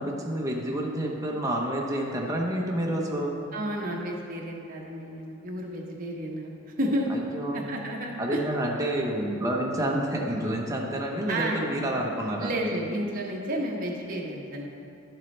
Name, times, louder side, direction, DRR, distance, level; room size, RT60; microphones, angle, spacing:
voice 1, 0.0-3.4 7.1-7.7 8.2-12.5, right 1 dB, 15° right, -2 dB, 0.9 m, -29 dB
voice 2, 3.5-7.1 7.5-8.4 11.3-11.7 12.4-14.7, right 1 dB, 40° right, -2 dB, 1.2 m, -31 dB
11.0 x 7.2 x 3.3 m, 2.5 s
head